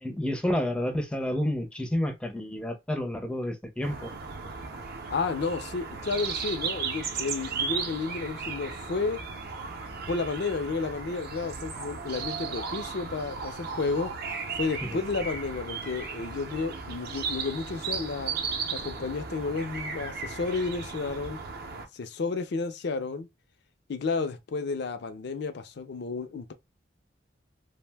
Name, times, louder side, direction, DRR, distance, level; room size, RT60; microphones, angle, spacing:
voice 1, 0.0-4.1 14.8-14.9, left 1 dB, 5° left, 0.5 m, -30 dB
sound 1, 3.8-21.9, right 5 dB, 55° right, 0.5 m, -36 dB
voice 2, 5.1-9.2 10.1-14.1 14.6-18.3 18.7-21.4 21.9-23.3 23.9-26.5, left 4 dB, 65° left, 0.5 m, -31 dB
2.5 x 2.1 x 3.3 m
head